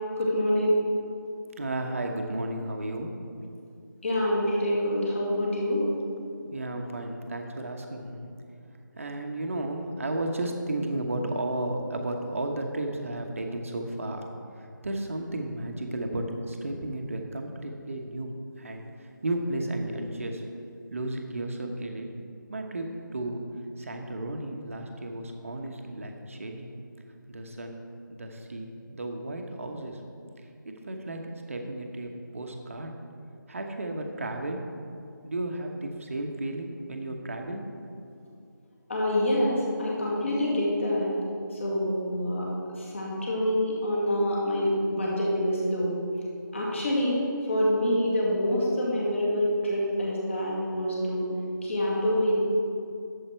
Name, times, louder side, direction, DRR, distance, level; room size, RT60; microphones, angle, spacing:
voice 1, 0.2-0.7 4.0-5.8 38.9-41.1 41.5-46.0 46.5-51.3 51.6-52.3, left 1 dB, 35° left, -4 dB, 2.3 m, -26 dB
voice 2, 1.6-3.2 6.5-8.3 9.0-14.2 14.5-22.1 22.5-23.4 23.8-26.7 27.0-27.8 28.1-30.0 30.6-32.9 33.5-34.6 35.2-37.6, right 1 dB, 40° right, 3 dB, 1.1 m, -33 dB
11.5 x 7.4 x 4.5 m, 2.5 s
figure-of-eight pair, 170°, 11 cm